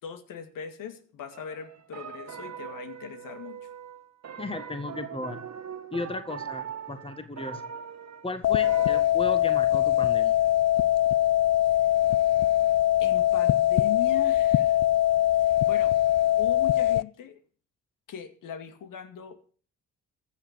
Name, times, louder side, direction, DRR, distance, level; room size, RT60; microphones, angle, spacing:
voice 1, 0.0-3.7 11.7-11.9 13.0-14.8 15.3-15.9 16.4-17.4 18.1-19.5, left 8 dB, 65° left, 8 dB, 2.3 m, -40 dB
sound 1, 1.3-9.0, right 8 dB, 50° right, 2.0 m, -41 dB
voice 2, 4.4-5.4 5.9-7.6 8.2-10.4, left 2 dB, 15° left, 10 dB, 1.6 m, -35 dB
sound 2, 8.4-17.0, left 13 dB, 50° left, 0.6 m, -22 dB
14.5 x 6.9 x 8.1 m, 0.42 s
supercardioid pair, 60°, 34 cm